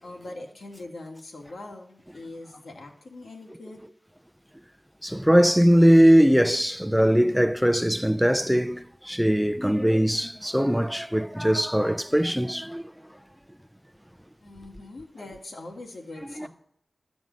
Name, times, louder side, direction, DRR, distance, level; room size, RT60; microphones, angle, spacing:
voice 1, 0.0-3.9 14.4-16.5, left 2 dB, 80° left, 2.2 m, -42 dB
voice 2, 5.0-12.8 16.4-16.5, equal, ahead, 0.5 m, -20 dB
12.5 x 5.2 x 7.5 m
wide cardioid pair, 95°, 0 cm